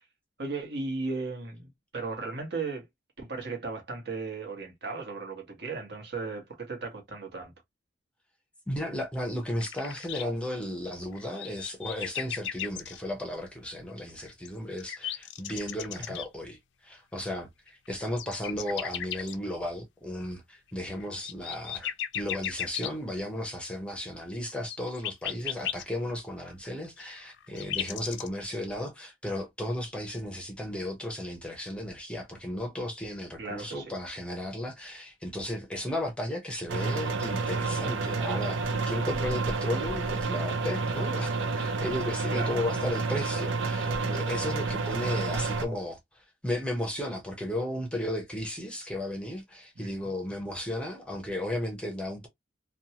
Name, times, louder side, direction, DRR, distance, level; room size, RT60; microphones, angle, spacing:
voice 1, 0.4-2.9 3.2-7.5 16.0-16.1 33.4-33.9 42.3-42.5 49.7-50.1, right 3 dB, 60° right, 1.1 m, -36 dB
voice 2, 8.7-16.6 16.8-52.3, left 1 dB, 5° left, 0.6 m, -34 dB
sound 1, 9.6-10.2 11.0-13.0 14.2-16.3 17.7-19.4 21.0-22.9 24.6-25.8 27.0-28.3, left 10 dB, 65° left, 0.4 m, -35 dB
sound 2, 36.7-45.6, right 3 dB, 80° right, 0.5 m, -30 dB
2.6 x 2.2 x 2.8 m
head